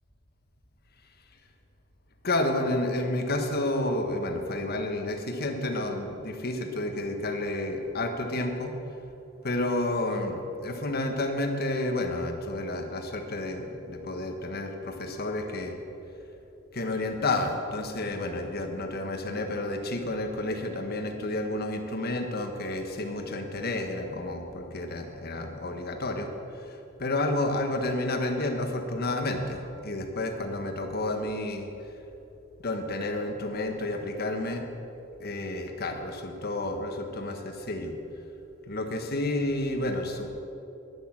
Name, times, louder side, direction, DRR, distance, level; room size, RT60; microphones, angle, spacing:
voice 1, 2.2-8.7 9.4-15.8 16.7-31.7 32.6-34.7 35.2-38.0 38.7-40.3, left 2 dB, 50° left, 4 dB, 1.4 m, -30 dB
10.5 x 10.5 x 7.4 m, 2.9 s
head